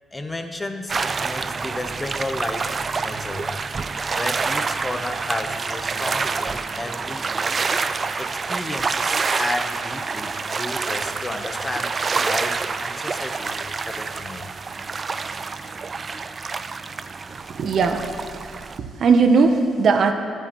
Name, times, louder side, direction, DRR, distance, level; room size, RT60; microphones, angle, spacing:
voice 1, 0.1-3.6 4.1-7.3 8.2-13.6 13.9-14.5 15.6-15.8, left 2 dB, 20° left, 5 dB, 1.0 m, -32 dB
sound 1, 0.9-18.8, right 4 dB, 35° right, 0.4 m, -27 dB
voice 2, 17.5-18.0 18.4-18.6 19.0-20.1, right 4 dB, 60° right, 6 dB, 0.8 m, -18 dB
24.0 x 8.2 x 3.1 m, 2.5 s
cardioid pair, 90°, 0 cm